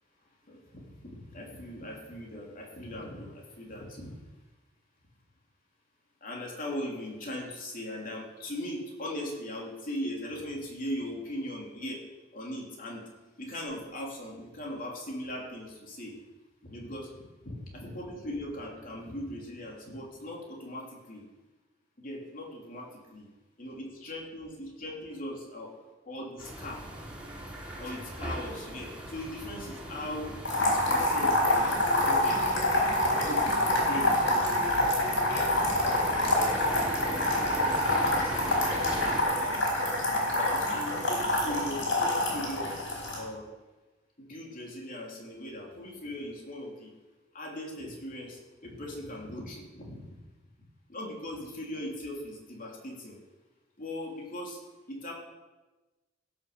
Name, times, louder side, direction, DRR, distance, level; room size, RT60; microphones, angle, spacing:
voice 1, 0.5-4.2 6.2-12.0 12.3-13.1 13.4-16.1 16.6-17.1 17.4-21.2 22.0-23.3 23.6-25.7 26.1-26.8 27.8-32.4 33.0-34.6 35.0-37.0 38.5-38.6 39.2-39.7 40.2-42.7 43.1-43.5 44.2-46.9 47.3-50.1 50.9-53.2 53.8-54.6 54.9-55.1, left 1 dB, 45° left, -1 dB, 3.1 m, -39 dB
sound 1, 26.4-39.2, equal, 5° right, 3.4 m, -38 dB
sound 2, 30.5-43.2, left 1 dB, 75° left, 4.7 m, -27 dB
16.5 x 7.0 x 6.8 m, 1.2 s
head